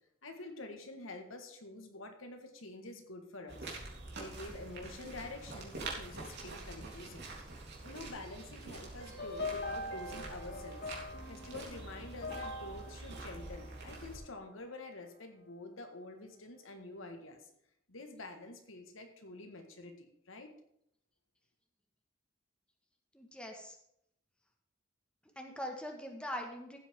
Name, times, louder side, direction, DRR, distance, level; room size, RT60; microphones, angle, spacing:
voice 1, 0.2-3.8 4.1-7.3 7.8-10.9 11.3-17.5 17.9-20.5, left 2 dB, 70° left, 5 dB, 1.7 m, -48 dB
sound 1, 3.5-14.2, right 2 dB, 60° right, 3.5 m, -46 dB
sound 2, 9.0-14.3, left 2 dB, 55° left, 1.9 m, -43 dB
voice 2, 23.1-23.8 25.3-26.8, equal, 5° left, 2 dB, 1.6 m, -42 dB
15.5 x 8.5 x 3.7 m, 0.73 s
head